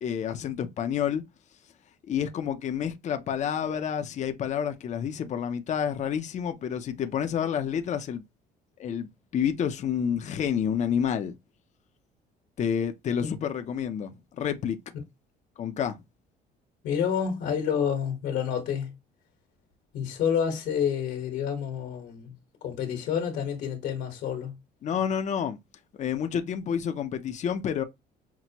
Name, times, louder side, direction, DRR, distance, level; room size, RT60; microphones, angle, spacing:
voice 1, 0.0-1.2 2.1-8.2 8.8-11.3 12.6-14.8 15.6-16.0 24.8-25.6 26.0-27.8, left 8 dB, 45° left, 0.6 m, -29 dB
voice 2, 16.8-18.9 19.9-22.3 22.6-24.5, left 8 dB, 80° left, 1.4 m, -29 dB
5.9 x 2.1 x 2.9 m
cardioid pair, 110°, 17 cm